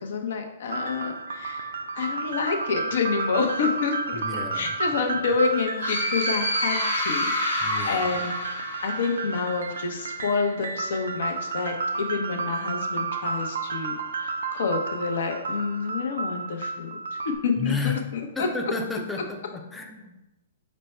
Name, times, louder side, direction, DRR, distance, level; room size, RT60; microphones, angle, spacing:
voice 1, 0.0-4.2 4.5-8.3 8.8-17.0 17.3-18.5, left 5 dB, 70° left, 4 dB, 0.7 m, -28 dB
sound 1, 0.7-17.4, right 4 dB, 85° right, 0.4 m, -32 dB
voice 2, 4.1-4.8 5.1-5.3 7.6-8.1 17.6-18.0 18.4-20.2, left 4 dB, 5° left, 2 dB, 0.5 m, -32 dB
sound 2, 5.8-9.5, left 1 dB, 90° left, 1.2 m, -28 dB
5.1 x 2.2 x 4.3 m, 0.98 s
hypercardioid pair, 150°, 0 cm